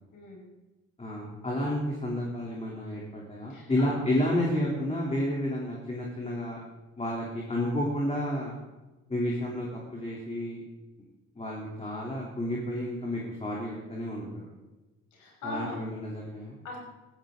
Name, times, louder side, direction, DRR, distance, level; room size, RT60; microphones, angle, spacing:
voice 1, 0.1-0.5 3.5-4.0 15.1-15.7 16.6-16.8, left 2 dB, 80° left, -2 dB, 5.7 m, -39 dB
voice 2, 1.0-6.6 7.0-8.6 9.1-10.6 11.3-14.5 15.4-16.5, left 1 dB, 20° left, -3 dB, 3.3 m, -31 dB
15.5 x 14.0 x 3.9 m, 1.1 s
cardioid pair, 90°, 30 cm